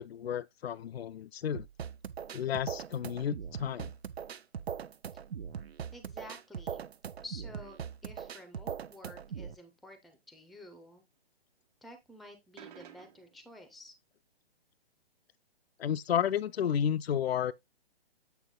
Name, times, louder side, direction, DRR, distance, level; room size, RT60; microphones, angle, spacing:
voice 1, 0.0-1.7 2.3-3.9 15.8-17.5, left 9 dB, 70° left, 0.6 m, -32 dB
sound 1, 1.5-9.5, right 8 dB, 80° right, 0.8 m, -40 dB
voice 2, 5.9-6.9 7.2-11.0 11.8-13.9, left 1 dB, ahead, 0.6 m, -51 dB
sound 2, 12.5-13.6, right 10 dB, 40° right, 1.4 m, -52 dB
8.3 x 4.6 x 3.8 m
hypercardioid pair, 145°, 31 cm